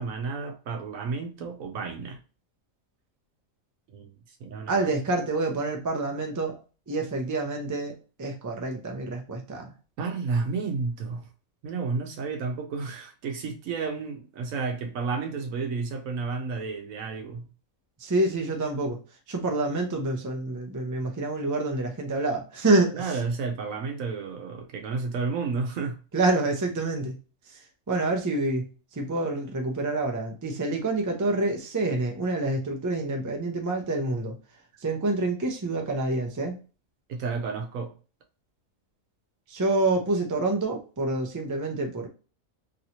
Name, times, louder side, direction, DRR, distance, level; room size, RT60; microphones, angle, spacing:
voice 1, 0.0-2.2 3.9-4.9 10.0-11.3 11.6-17.5 22.9-26.0 37.1-38.0, right 4 dB, 80° right, 1.1 m, -31 dB
voice 2, 4.7-6.6 6.9-9.7 18.0-19.0 19.3-23.1 26.1-27.1 27.5-27.6 27.9-34.3 34.8-36.5 39.5-42.1, right 2 dB, 30° right, 0.3 m, -27 dB
3.1 x 2.8 x 2.8 m
omnidirectional pair, 1.4 m